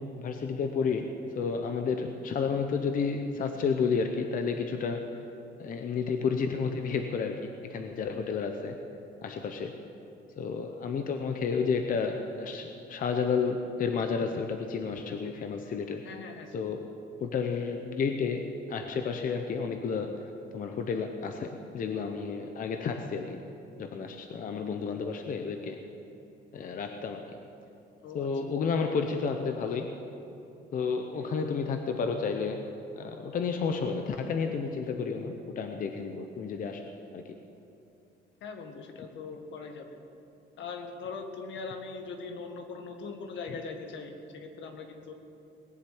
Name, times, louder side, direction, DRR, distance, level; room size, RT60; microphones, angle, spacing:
voice 1, 0.0-5.1 5.6-8.8 9.2-9.7 10.4-16.0 16.5-16.9 17.2-20.2 20.5-23.4 23.8-25.8 26.5-27.4 28.1-29.9 30.7-32.7 32.9-36.8 37.1-37.4, left 5 dB, 45° left, 5 dB, 0.8 m, -31 dB
voice 2, 16.0-16.7 28.0-28.3 38.4-40.0 40.6-45.1, left 4 dB, 75° left, 5 dB, 1.7 m, -41 dB
19.5 x 7.4 x 9.3 m, 2.7 s
cardioid pair, 170°, 19 cm